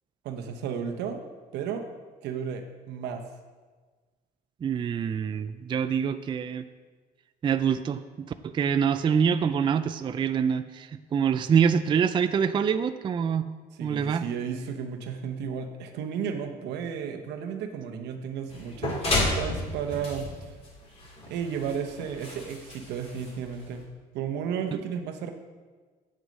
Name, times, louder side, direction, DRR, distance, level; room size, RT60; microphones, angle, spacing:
voice 1, 0.2-1.2 1.5-1.8 2.2-3.2 13.8-20.5 21.3-23.9 24.1-25.3, right 7 dB, 80° right, 5 dB, 1.0 m, -33 dB
voice 2, 4.6-6.6 7.4-13.5 13.8-14.3 24.7-24.8, right 7 dB, 30° right, 11 dB, 0.3 m, -25 dB
sound 1, 18.5-23.8, left 2 dB, 35° left, 2.6 m, -32 dB
8.0 x 6.3 x 5.2 m, 1.4 s
cardioid pair, 110°, 17 cm